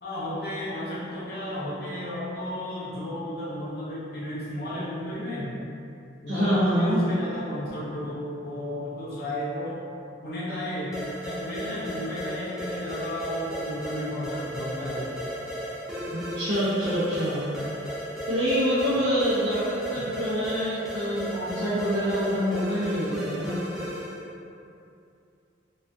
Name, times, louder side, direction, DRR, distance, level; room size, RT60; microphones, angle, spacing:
voice 1, 0.0-5.5 6.2-9.8 10.2-11.0 11.2-15.1, left 1 dB, 55° left, -7 dB, 0.6 m, -33 dB
voice 2, 6.3-7.1 16.0-17.5 18.3-23.6, equal, 70° right, -13 dB, 0.6 m, -26 dB
sound 1, 10.9-24.3, equal, ahead, 0.3 m, -35 dB
2.3 x 2.2 x 2.5 m, 2.6 s
head